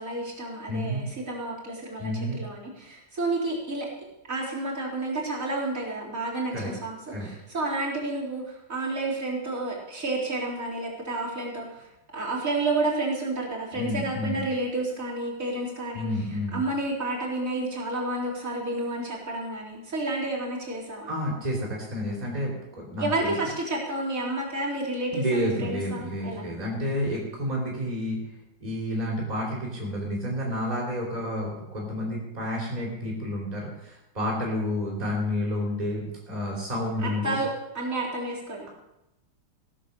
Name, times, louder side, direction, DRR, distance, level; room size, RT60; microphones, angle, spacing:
voice 1, 0.0-3.9 4.3-11.9 12.1-16.1 16.3-21.1 23.0-26.5 37.0-38.7, right 2 dB, 50° right, -5 dB, 4.2 m, -30 dB
voice 2, 0.7-1.0 2.0-2.4 6.5-6.7 7.1-7.3 13.7-14.4 15.9-16.6 21.1-22.5 22.9-23.3 25.1-28.2 28.6-37.4, left 1 dB, 25° right, -4 dB, 3.6 m, -30 dB
16.5 x 7.9 x 6.8 m, 0.90 s
omnidirectional pair, 1.8 m